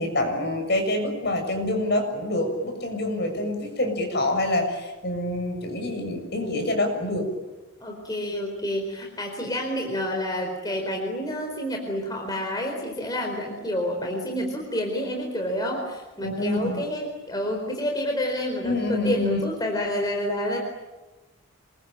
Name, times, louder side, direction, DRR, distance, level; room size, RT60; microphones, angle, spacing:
voice 1, 0.0-7.3 16.2-16.9 18.6-19.4, left 1 dB, 50° left, 4 dB, 7.1 m, -26 dB
voice 2, 7.8-20.6, equal, 20° left, 1 dB, 4.4 m, -29 dB
27.0 x 22.5 x 8.9 m, 1.1 s
head